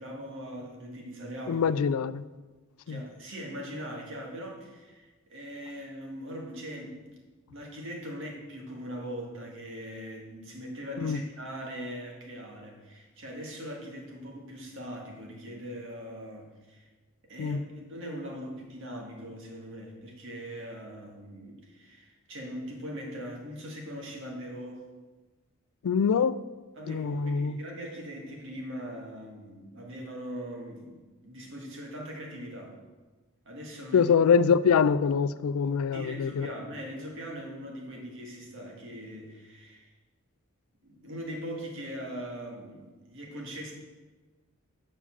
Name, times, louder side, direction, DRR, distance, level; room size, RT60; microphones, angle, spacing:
voice 1, 0.0-1.7 2.9-7.1 7.5-16.9 17.2-24.9 26.8-32.8 33.5-34.1 35.9-39.9 40.8-43.7, equal, 60° right, 2.0 m, -41 dB
voice 2, 1.5-2.3 2.9-3.0 11.0-11.2 17.4-17.6 25.8-26.4 26.9-27.6 33.9-36.5, left 6 dB, 80° left, 0.4 m, -24 dB
7.3 x 5.5 x 7.3 m
head